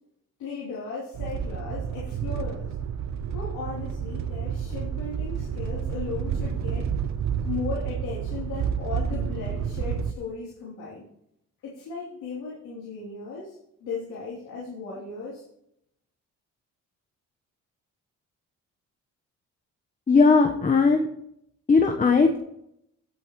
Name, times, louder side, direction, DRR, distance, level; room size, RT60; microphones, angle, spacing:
voice 1, 0.4-2.7 3.3-6.9 7.4-11.0 11.6-15.4, left 4 dB, 85° left, -6 dB, 3.4 m, -36 dB
sound 1, 1.1-10.1, right 7 dB, 65° right, 0.9 m, -30 dB
voice 2, 20.1-21.1 21.7-22.4, left 4 dB, 25° left, 4 dB, 1.2 m, -18 dB
16.5 x 8.7 x 3.1 m, 0.77 s
cardioid pair, 90°, 30 cm